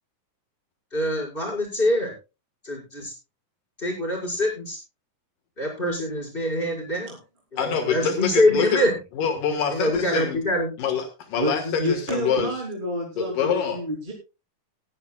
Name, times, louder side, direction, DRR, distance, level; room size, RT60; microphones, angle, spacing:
voice 1, 0.9-2.1 2.6-3.1 3.8-4.8 5.6-7.2 7.5-9.0 9.7-10.7, left 1 dB, 15° left, -1 dB, 5.7 m, -24 dB
voice 2, 7.6-8.8 9.2-10.4 10.8-12.5 13.2-13.8, left 7 dB, 80° left, 6 dB, 3.1 m, -25 dB
voice 3, 11.4-14.1, equal, 15° right, -2 dB, 3.0 m, -28 dB
19.5 x 10.5 x 2.3 m, 0.29 s
omnidirectional pair, 3.8 m